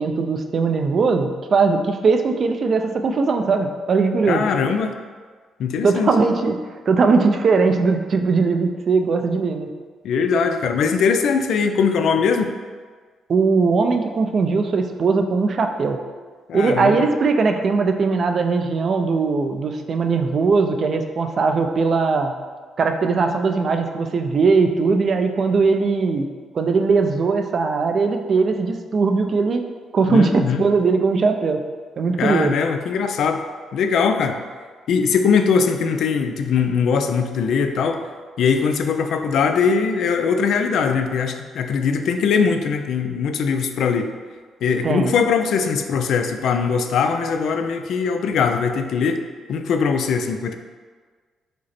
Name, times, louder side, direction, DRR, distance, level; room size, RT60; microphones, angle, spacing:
voice 1, 0.0-4.4 5.8-6.6 6.9-9.7 13.3-16.0 16.5-22.4 22.8-26.3 26.5-29.7 29.9-31.6 32.0-32.5 44.8-45.1, right 4 dB, 50° right, 5 dB, 0.4 m, -19 dB
voice 2, 4.3-4.9 5.6-6.1 10.0-12.5 16.5-17.1 30.1-30.6 32.2-33.4 33.7-34.4 34.9-38.0 38.4-44.1 44.6-49.2 49.5-50.6, left 6 dB, 70° left, 7 dB, 0.3 m, -21 dB
5.0 x 2.0 x 4.2 m, 1.5 s
cardioid pair, 90°, 0 cm